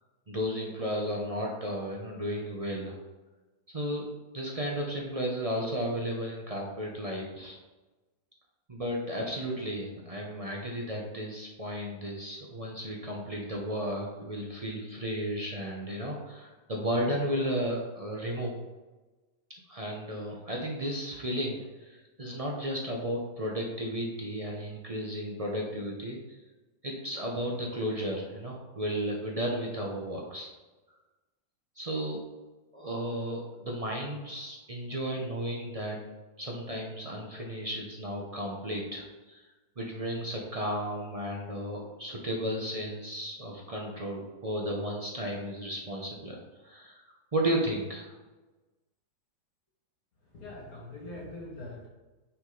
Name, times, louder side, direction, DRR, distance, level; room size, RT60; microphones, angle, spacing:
voice 1, 0.3-3.0 3.7-4.1 4.3-7.6 8.7-18.5 19.7-26.4 26.8-30.5 31.8-32.2 32.7-36.0 36.4-39.4 39.8-46.4 46.6-47.0 47.3-48.2, equal, 60° right, -1 dB, 0.3 m, -34 dB
voice 2, 50.2-51.9, left 2 dB, 50° left, -4 dB, 2.2 m, -43 dB
6.2 x 6.1 x 3.9 m, 1.2 s
omnidirectional pair, 2.1 m